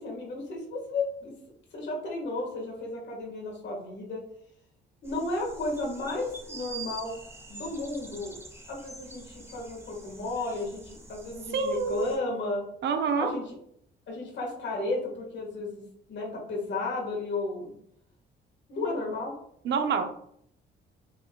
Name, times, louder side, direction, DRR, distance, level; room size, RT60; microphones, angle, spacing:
voice 1, 0.0-1.3 1.7-4.2 5.0-7.2 7.5-8.3 8.7-12.6 13.2-13.4 14.1-15.8 16.1-17.7 18.7-19.3, left 2 dB, 65° left, -2 dB, 1.6 m, -33 dB
sound 1, 5.0-12.2, right 3 dB, 10° right, 0.9 m, -46 dB
voice 2, 11.5-12.1 12.8-13.3 19.6-20.0, right 5 dB, 60° right, 6 dB, 0.7 m, -27 dB
5.4 x 3.5 x 2.3 m, 0.69 s
cardioid pair, 90°, 20 cm